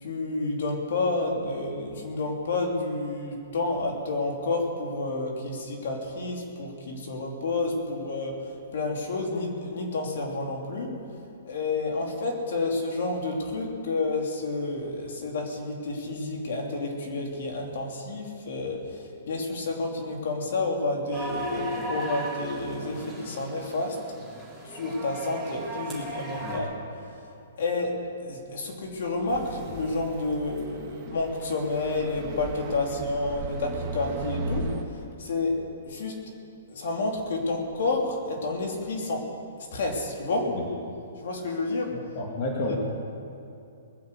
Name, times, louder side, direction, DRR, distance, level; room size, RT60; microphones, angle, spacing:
voice 1, 0.0-11.1 11.4-24.1 24.6-26.7 27.6-36.3 36.7-39.4 39.7-40.6 41.2-42.1 42.7-42.8, left 2 dB, 65° left, 0 dB, 3.0 m, -30 dB
sound 1, 21.1-26.6, right 2 dB, ahead, 3.5 m, -37 dB
sound 2, 29.3-34.8, right 2 dB, 30° right, 1.7 m, -36 dB
voice 2, 41.9-42.7, left 2 dB, 40° left, -1 dB, 2.5 m, -31 dB
20.5 x 7.6 x 8.2 m, 2.6 s
hypercardioid pair, 155°, 0 cm